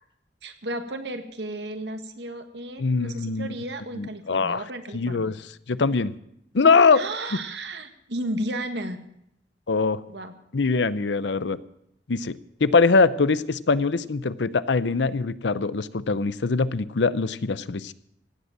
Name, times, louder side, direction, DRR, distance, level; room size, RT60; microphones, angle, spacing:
voice 1, 0.4-5.3 6.9-9.0 10.1-10.3, right 1 dB, 70° right, 8 dB, 1.6 m, -33 dB
voice 2, 2.8-3.5 4.0-4.6 4.9-5.4 5.7-6.1 6.5-7.0 9.7-10.0 10.5-11.6 12.1-17.9, left 4 dB, 85° left, 16 dB, 0.7 m, -22 dB
16.5 x 8.1 x 8.9 m, 0.75 s
head